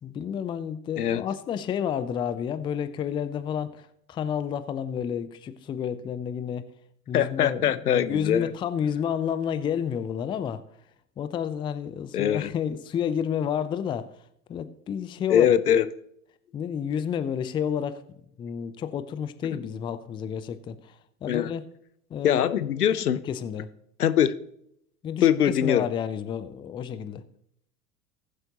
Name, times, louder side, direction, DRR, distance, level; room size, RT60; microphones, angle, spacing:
voice 1, 0.0-6.7 7.1-10.6 11.2-14.1 14.5-15.5 16.5-18.0 18.4-21.7 22.1-22.6 22.9-23.7 25.0-27.2, left 8 dB, 10° left, 0.4 m, -30 dB
voice 2, 7.1-8.5 12.1-12.5 15.3-15.9 19.5-19.6 21.3-21.5 22.2-23.2 24.0-24.3 25.2-25.8, left 9 dB, 80° left, 0.7 m, -22 dB
19.0 x 7.7 x 2.9 m
figure-of-eight pair, 80°, 45 cm